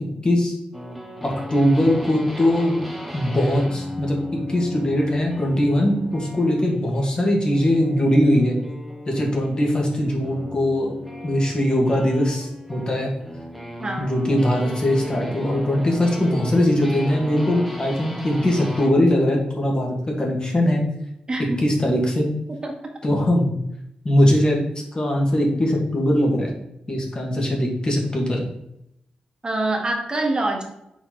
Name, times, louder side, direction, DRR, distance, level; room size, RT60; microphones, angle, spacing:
voice 1, 0.2-0.6 1.2-2.8 3.1-4.2 4.5-8.6 9.1-10.9 11.2-13.1 14.0-20.8 21.6-22.3 23.0-23.5 24.0-24.6 24.9-26.5 26.9-28.5, left 1 dB, 35° left, -1 dB, 1.9 m, -20 dB
sound 1, 0.7-19.0, left 1 dB, ahead, 1.0 m, -36 dB
voice 2, 13.8-14.1 21.3-21.6 22.6-22.7 29.4-30.6, right 2 dB, 30° right, 2 dB, 1.5 m, -25 dB
5.8 x 4.2 x 4.0 m, 0.80 s
cardioid pair, 80°, 3 cm